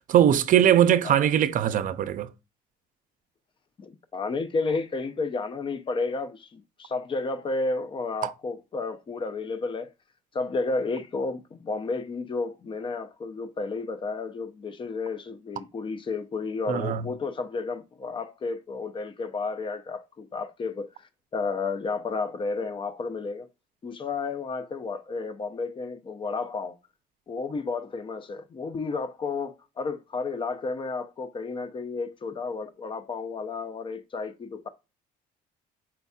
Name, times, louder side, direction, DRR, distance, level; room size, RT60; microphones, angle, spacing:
voice 1, 0.1-2.3 8.2-8.3 16.7-17.0, right 10 dB, 50° right, 0.5 m, -21 dB
voice 2, 3.8-9.9 10.3-20.9 21.3-23.5 23.8-26.8 27.3-34.7, left 4 dB, 30° left, 0.6 m, -32 dB
4.5 x 4.0 x 2.3 m
cardioid pair, 110°, 17 cm